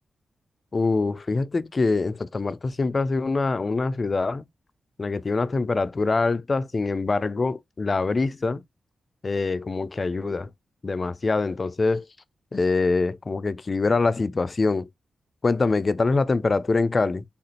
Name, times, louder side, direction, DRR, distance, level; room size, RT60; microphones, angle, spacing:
voice 1, 0.7-4.4 5.0-8.6 9.2-10.5 10.8-12.1 12.5-14.9 15.4-17.2, left 3 dB, 45° left, 0.3 m, -24 dB
3.5 x 2.5 x 2.8 m
supercardioid pair, 40°, 0 cm